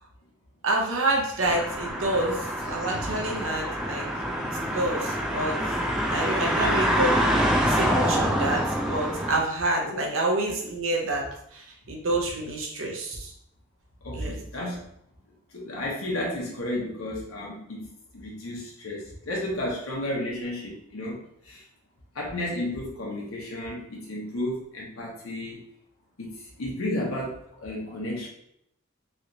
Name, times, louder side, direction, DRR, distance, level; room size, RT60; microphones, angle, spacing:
voice 1, 0.6-4.1 4.4-5.6 6.1-7.1 7.7-11.2 11.5-13.3 14.1-14.3, right 2 dB, 70° right, 0 dB, 0.7 m, -28 dB
sound 1, 1.4-9.4, equal, 5° right, 0.3 m, -26 dB
voice 2, 14.0-14.8 15.5-21.6 22.1-25.6 26.2-28.3, left 1 dB, 85° left, -3 dB, 0.8 m, -33 dB
3.1 x 2.9 x 2.6 m, 0.72 s
head